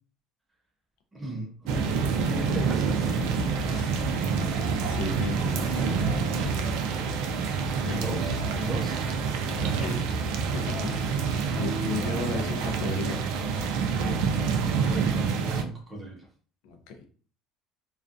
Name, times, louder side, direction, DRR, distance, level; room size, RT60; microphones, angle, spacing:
voice 1, 1.1-2.0 2.3-3.2 7.8-9.9 10.3-10.9 14.7-16.3, right 2 dB, 10° right, 0 dB, 0.5 m, -37 dB
sound 1, 1.7-15.6, right 5 dB, 65° right, 0.3 m, -27 dB
voice 2, 4.8-6.7 7.8-8.2 9.6-10.0 10.5-11.0 11.5-13.2 16.6-17.0, left 5 dB, 70° left, 4 dB, 0.5 m, -35 dB
2.3 x 2.3 x 2.5 m, 0.42 s
cardioid pair, 175°, 0 cm